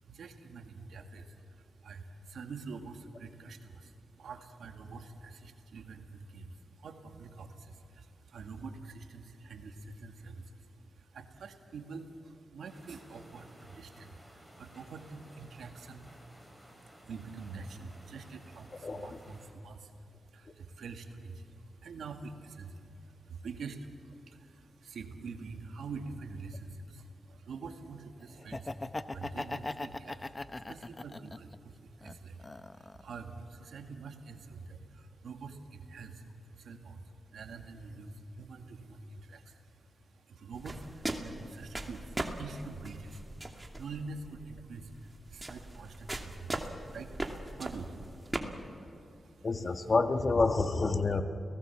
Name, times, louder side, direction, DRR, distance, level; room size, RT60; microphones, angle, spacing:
voice 1, 0.0-49.5, right 4 dB, 85° right, 5 dB, 2.0 m, -46 dB
sound 1, 12.7-19.5, equal, 5° left, 7.4 m, -56 dB
voice 2, 18.8-19.2 49.4-51.2, left 3 dB, 50° left, 8 dB, 1.6 m, -28 dB
Laughter, 28.4-31.6 32.0-33.1, left 2 dB, 30° left, 0.9 m, -39 dB
sound 2, 40.5-48.4, right 2 dB, 25° right, 2.6 m, -40 dB
30.0 x 18.0 x 7.2 m, 2.8 s
cardioid pair, 55°, 0 cm